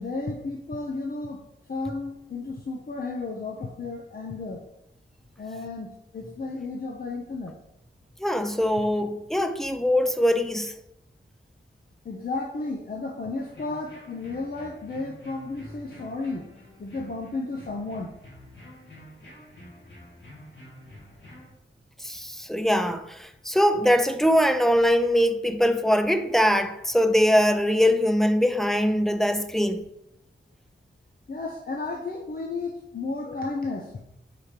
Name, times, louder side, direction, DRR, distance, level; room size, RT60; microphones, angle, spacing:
voice 1, 0.0-1.4 1.7-4.6 5.4-7.5 12.0-16.4 16.8-18.1 31.3-34.0, left 3 dB, 45° left, 0.7 m, -33 dB
voice 2, 8.2-10.7 22.0-29.8, equal, ahead, 0.5 m, -22 dB
sound 1, 13.3-21.5, left 1 dB, 65° left, 2.0 m, -48 dB
4.8 x 4.3 x 5.0 m
wide cardioid pair, 90°, 21 cm